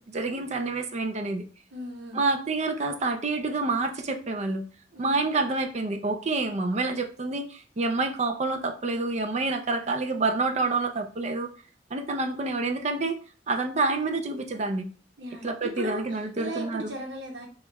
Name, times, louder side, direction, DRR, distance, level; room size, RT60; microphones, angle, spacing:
voice 1, 0.0-1.4 2.1-4.7 5.0-11.5 11.9-13.2 13.5-14.9 15.4-16.9, right 3 dB, 40° right, 6 dB, 0.5 m, -28 dB
voice 2, 1.7-2.2 4.9-5.2 15.2-17.5, right 1 dB, 85° right, 1 dB, 0.9 m, -37 dB
5.2 x 2.4 x 3.0 m, 0.39 s
head